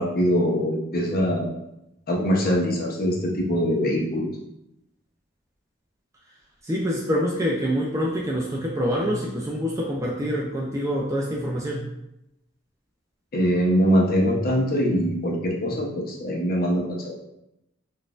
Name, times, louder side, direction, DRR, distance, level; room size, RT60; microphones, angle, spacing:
voice 1, 0.0-1.5 2.1-4.3 13.3-17.1, equal, 50° left, 0 dB, 0.7 m, -23 dB
voice 2, 6.6-11.8, equal, 15° right, -3 dB, 0.3 m, -26 dB
3.9 x 2.5 x 2.3 m, 0.85 s
head